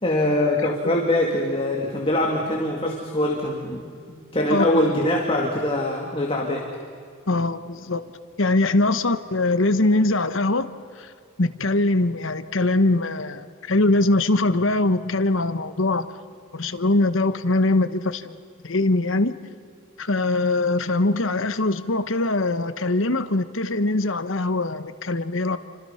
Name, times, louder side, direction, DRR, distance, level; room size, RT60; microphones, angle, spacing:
voice 1, 0.0-6.7 8.9-9.0, left 1 dB, 25° left, 0 dB, 2.4 m, -23 dB
voice 2, 4.5-4.8 7.3-8.0 8.4-10.7 11.0-11.1 11.4-16.1 16.5-18.4 18.6-19.3 20.0-25.6, left 2 dB, 65° left, 11 dB, 1.2 m, -22 dB
29.0 x 26.0 x 5.8 m, 2.3 s
head